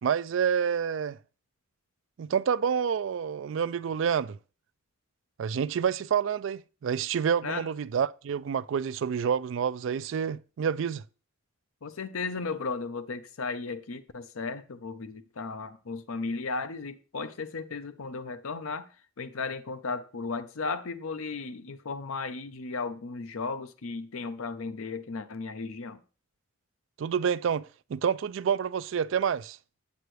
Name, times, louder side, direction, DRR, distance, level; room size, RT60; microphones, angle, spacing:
voice 1, 0.0-1.2 2.2-4.4 5.4-11.0 27.0-29.6, right 7 dB, 65° right, 0.3 m, -28 dB
voice 2, 11.8-18.9 19.2-26.0, left 4 dB, 85° left, 0.7 m, -35 dB
8.1 x 7.7 x 3.2 m
head